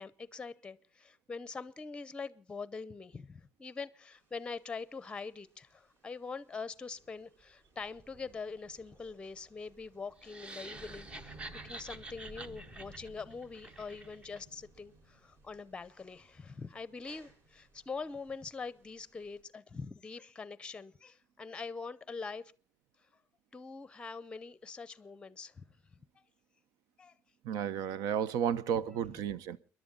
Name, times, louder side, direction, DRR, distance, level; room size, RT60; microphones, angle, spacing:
voice 1, 0.0-22.5 23.5-25.7 27.0-27.1, left 4 dB, 15° left, 0.7 m, -44 dB
sound 1, 4.1-19.4, right 1 dB, 45° right, 4.4 m, -58 dB
sound 2, 10.2-14.4, right 2 dB, 15° right, 0.7 m, -48 dB
voice 2, 27.4-29.6, right 8 dB, 85° right, 0.8 m, -32 dB
30.0 x 11.0 x 3.9 m
cardioid pair, 165°, 6 cm